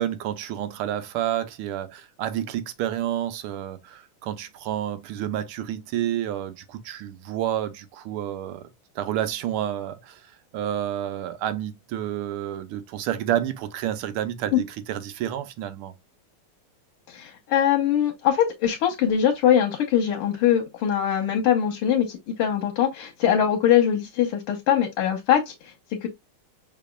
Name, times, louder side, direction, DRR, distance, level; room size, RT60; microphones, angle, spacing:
voice 1, 0.0-8.6 8.9-10.2 10.5-15.9, right 11 dB, 80° right, 1.6 m, -29 dB
voice 2, 17.1-26.1, left 9 dB, 90° left, 1.8 m, -22 dB
5.5 x 4.1 x 2.3 m
omnidirectional pair, 2.4 m